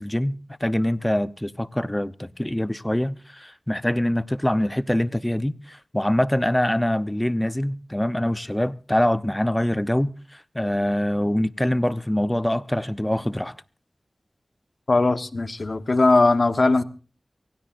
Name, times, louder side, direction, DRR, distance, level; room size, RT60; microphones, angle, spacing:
voice 1, 0.0-13.5, left 1 dB, 15° left, 0.8 m, -24 dB
voice 2, 14.9-16.8, left 2 dB, 65° left, 1.2 m, -19 dB
24.5 x 16.5 x 2.6 m
cardioid pair, 40°, 0 cm